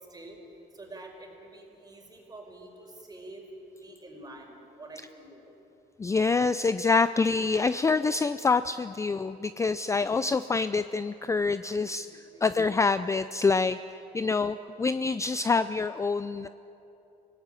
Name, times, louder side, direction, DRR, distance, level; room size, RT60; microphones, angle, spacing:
voice 1, 0.7-3.4 3.7-5.5 11.9-12.6, right 2 dB, 25° right, 2 dB, 5.1 m, -47 dB
voice 2, 6.0-12.1 12.4-13.8 14.1-16.5, left 4 dB, 15° left, 13 dB, 0.4 m, -26 dB
25.0 x 18.0 x 9.0 m, 3.0 s
cardioid pair, 110°, 17 cm